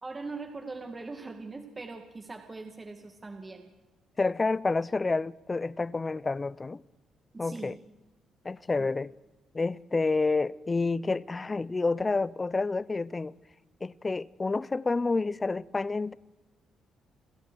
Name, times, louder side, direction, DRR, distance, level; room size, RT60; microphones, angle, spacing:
voice 1, 0.0-3.7 7.3-7.8 8.8-8.9, right 3 dB, 25° right, 2.3 m, -41 dB
voice 2, 4.2-6.8 7.4-7.8 8.4-9.1 9.5-13.3 13.8-16.2, left 3 dB, 25° left, 0.6 m, -29 dB
30.0 x 22.5 x 4.6 m
cardioid pair, 90°, 0 cm